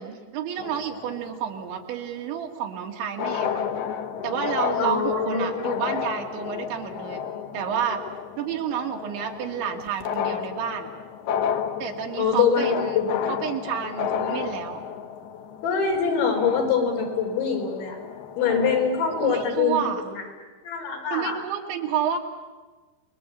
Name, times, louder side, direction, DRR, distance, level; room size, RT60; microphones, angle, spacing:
voice 1, 0.0-3.6 4.2-7.2 7.5-8.0 8.4-10.9 11.8-13.0 13.3-14.8 19.2-20.0 21.1-22.2, right 8 dB, 85° right, 3 dB, 4.5 m, -30 dB
sound 1, 0.6-1.7 2.8-2.9 3.1-19.6, left 8 dB, 70° left, 3.1 m, -32 dB
voice 2, 4.8-5.9 12.2-13.3 15.6-18.0 18.4-20.2 20.6-21.4, left 6 dB, 85° left, 1 dB, 6.9 m, -24 dB
28.5 x 21.5 x 8.4 m, 1.3 s
omnidirectional pair, 5.1 m